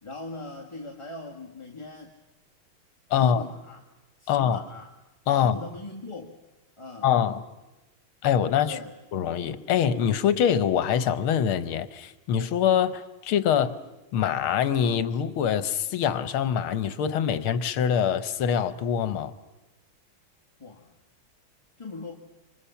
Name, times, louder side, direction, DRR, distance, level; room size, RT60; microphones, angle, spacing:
voice 1, 0.0-2.1 3.2-3.8 4.2-4.9 5.3-6.3 6.8-7.1 8.6-8.9 20.6-21.0 21.8-22.2, left 3 dB, 15° left, -1 dB, 1.5 m, -39 dB
voice 2, 3.1-3.4 4.3-4.6 5.3-5.6 7.0-7.4 8.2-8.8 9.1-13.8 14.1-19.3, left 8 dB, 80° left, 13 dB, 1.8 m, -24 dB
27.5 x 26.0 x 5.7 m, 1.1 s
omnidirectional pair, 2.3 m